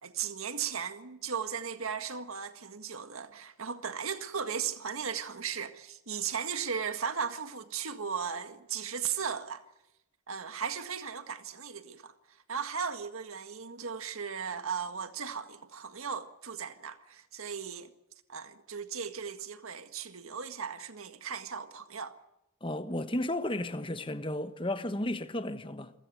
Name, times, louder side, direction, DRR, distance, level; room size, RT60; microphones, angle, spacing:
voice 1, 0.0-9.6 10.3-12.1 12.5-17.9 18.3-22.1, right 7 dB, 90° right, 1.8 m, -36 dB
voice 2, 22.6-25.9, left 1 dB, 25° left, 1.2 m, -33 dB
27.5 x 15.5 x 9.2 m
head